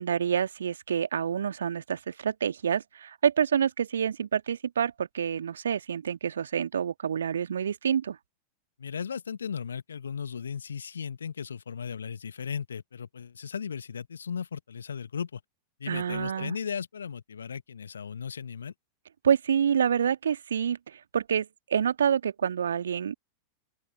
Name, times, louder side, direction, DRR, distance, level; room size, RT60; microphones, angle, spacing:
voice 1, 0.0-8.2 15.9-16.6 19.2-23.1, right 8 dB, 65° right, 2.1 m, -27 dB
voice 2, 8.8-15.4 15.8-18.7, left 7 dB, 70° left, 1.6 m, -36 dB
open air
figure-of-eight pair, 90°, 0 cm